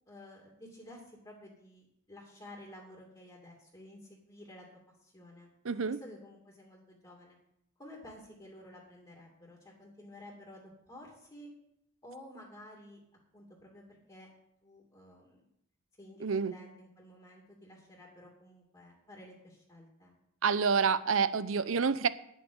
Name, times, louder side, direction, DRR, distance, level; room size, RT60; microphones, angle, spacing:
voice 1, 0.1-4.7 5.0-5.5 5.9-7.4 7.8-11.5 12.0-13.0 13.3-14.3 14.6-15.4 16.0-20.1, left 1 dB, 20° left, 2.5 m, -52 dB
voice 2, 5.6-6.0 16.2-16.5 20.4-22.1, right 5 dB, 70° right, 0.6 m, -28 dB
10.5 x 7.6 x 7.9 m
head